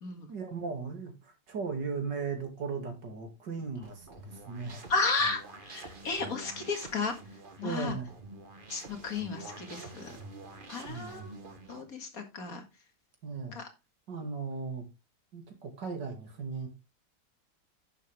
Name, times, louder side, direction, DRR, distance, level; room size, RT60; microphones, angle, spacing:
voice 1, 0.3-4.9 7.6-8.1 10.9-11.3 13.2-13.6 14.1-14.8 15.3-16.7, right 5 dB, 90° right, 3.0 m, -37 dB
sound 1, 3.8-11.8, right 2 dB, 30° right, 1.4 m, -47 dB
voice 2, 4.9-7.1 7.6-7.9 8.7-10.2 10.7-11.3 11.7-12.6 13.5-13.6, left 4 dB, 55° left, 2.3 m, -33 dB
10.5 x 7.2 x 3.5 m
omnidirectional pair, 1.8 m